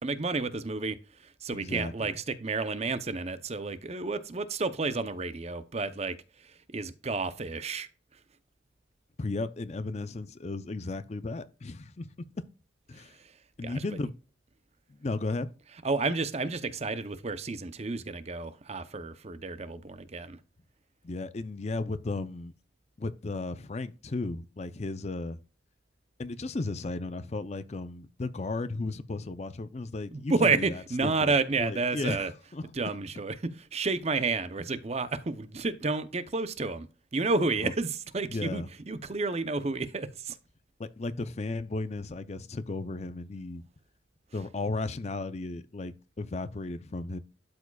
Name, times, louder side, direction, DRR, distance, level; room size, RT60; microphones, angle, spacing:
voice 1, 0.0-6.2 6.7-7.9 12.9-13.0 13.6-13.8 15.8-20.4 30.1-32.3 32.7-36.9 37.1-40.4, right 3 dB, 35° right, 0.6 m, -31 dB
voice 2, 1.5-2.1 9.2-12.1 12.9-13.2 13.6-14.1 14.9-15.5 21.0-22.5 23.0-25.4 26.2-31.3 31.6-32.7 37.6-37.7 38.3-38.7 40.8-43.6 44.3-47.2, left 2 dB, 35° left, 0.5 m, -35 dB
12.0 x 4.8 x 2.3 m
head